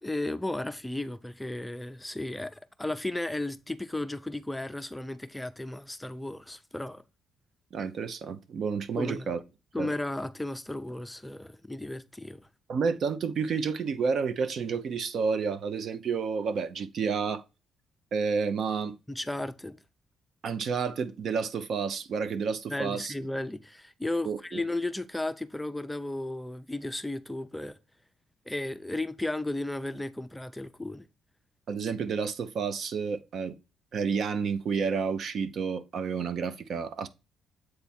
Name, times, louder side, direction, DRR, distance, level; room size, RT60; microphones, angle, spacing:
voice 1, 0.0-7.0 9.0-9.3 9.7-12.4 19.1-19.8 22.7-27.8 28.5-31.1, left 2 dB, 10° left, 0.5 m, -34 dB
voice 2, 7.7-9.4 9.8-9.9 12.7-17.4 18.1-19.0 20.4-23.1 24.3-24.6 31.7-33.5 33.9-37.1, right 5 dB, 60° right, 0.7 m, -30 dB
7.8 x 3.5 x 4.3 m
cardioid pair, 90°, 0 cm